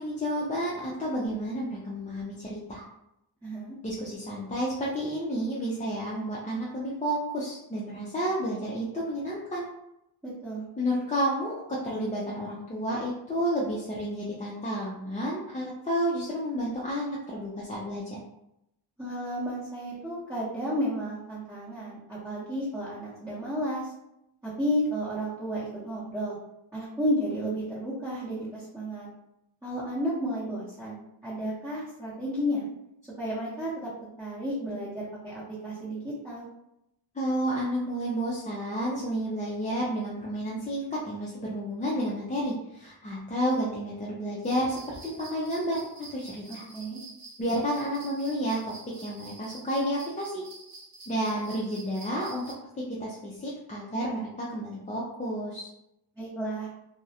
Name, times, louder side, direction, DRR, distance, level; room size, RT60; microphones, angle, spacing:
voice 1, 0.0-2.8 3.8-9.7 10.8-18.2 37.1-46.6 47.4-50.4 51.1-52.4 53.0-55.7, equal, 20° left, -5 dB, 0.3 m, -31 dB
voice 2, 3.4-3.8 10.2-10.7 19.0-23.9 24.4-26.4 26.7-29.1 29.6-32.7 33.2-33.9 34.2-36.5 46.5-47.0 56.2-56.7, equal, 10° right, -11 dB, 0.7 m, -32 dB
sound 1, 44.4-52.5, right 2 dB, 50° right, 0.7 m, -48 dB
2.3 x 2.0 x 2.7 m, 0.83 s
wide cardioid pair, 115°, 46 cm